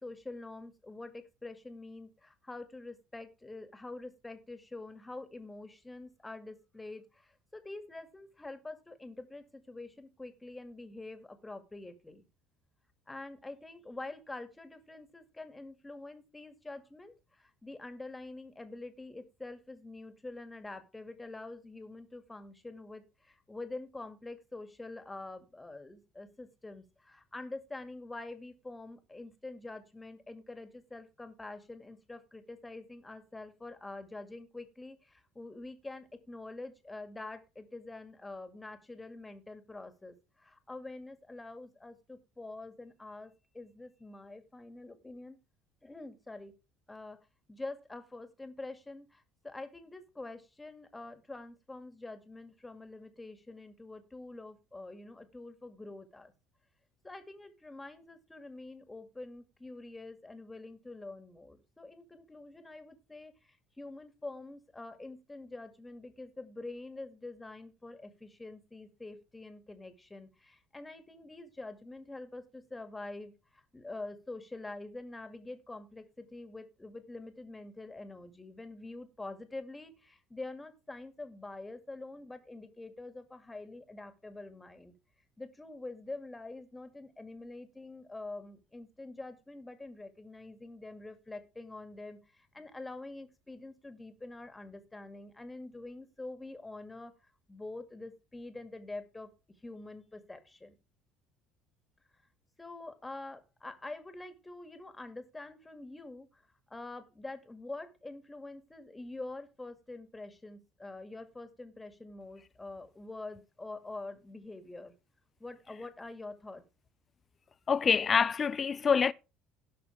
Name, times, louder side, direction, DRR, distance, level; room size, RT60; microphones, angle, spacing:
voice 1, 0.0-12.2 13.1-45.4 45.8-46.5 46.9-47.2 47.5-56.3 57.0-84.9 85.4-97.1 97.5-99.3 99.6-100.8 102.6-106.4 106.7-114.9 115.4-116.6, left 2 dB, 15° left, 2.2 m, -46 dB
voice 2, 117.7-119.1, left 6 dB, 35° left, 0.4 m, -26 dB
17.5 x 6.1 x 3.5 m
figure-of-eight pair, 60°, 0 cm